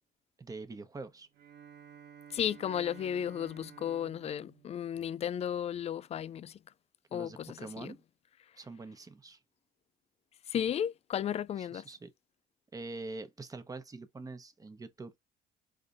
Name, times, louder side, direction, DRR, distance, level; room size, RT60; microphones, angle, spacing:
voice 1, 0.4-1.3 7.1-8.0 8.6-9.4 11.6-12.1 12.7-15.2, right 3 dB, 20° right, 1.1 m, -44 dB
Bowed string instrument, 1.3-5.8, right 8 dB, 85° right, 1.4 m, -54 dB
voice 2, 2.3-6.6 7.1-7.9 10.5-11.8, left 9 dB, 40° left, 0.4 m, -34 dB
5.2 x 3.8 x 2.6 m
cardioid pair, 110°, 17 cm